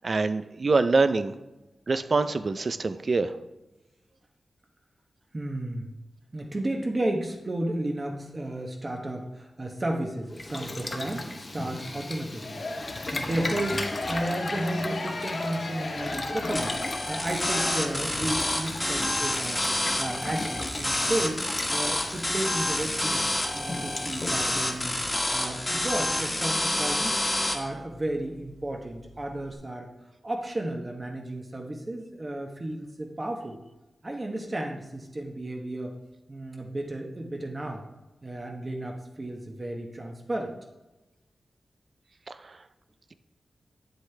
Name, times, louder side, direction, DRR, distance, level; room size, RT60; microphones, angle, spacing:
voice 1, 0.0-1.3 1.9-3.3, right 3 dB, 45° right, 12 dB, 0.5 m, -24 dB
voice 2, 5.3-5.9 6.3-12.6 13.1-16.7 17.1-21.4 21.7-23.2 23.5-25.0 25.3-27.2 27.5-29.9 30.2-33.6 34.0-35.9 36.3-37.8 38.2-40.5, right 1 dB, 30° right, 1 dB, 0.9 m, -33 dB
Boiling, 10.3-24.9, left 2 dB, 35° left, 0.8 m, -37 dB
sound 1, 12.4-18.3, left 2 dB, 65° left, 1.5 m, -35 dB
sound 2, 16.6-27.6, left 1 dB, 15° left, 1.3 m, -28 dB
8.5 x 8.1 x 3.3 m, 1.0 s
wide cardioid pair, 105°, 0 cm